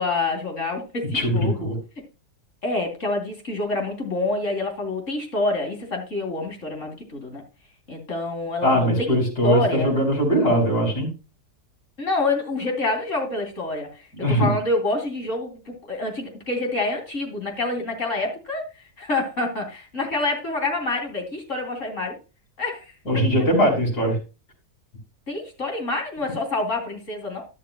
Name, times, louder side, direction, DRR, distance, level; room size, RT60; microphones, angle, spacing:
voice 1, 0.0-1.7 2.6-7.4 7.9-9.9 12.0-13.9 14.2-18.6 19.0-22.1 22.6-22.8 23.1-23.3 25.3-27.5, left 2 dB, 50° left, 3 dB, 3.4 m, -27 dB
voice 2, 1.1-1.7 8.6-11.1 14.2-14.5 23.1-24.1, equal, 90° left, -3 dB, 5.0 m, -20 dB
12.5 x 11.0 x 2.2 m, 0.31 s
omnidirectional pair, 1.7 m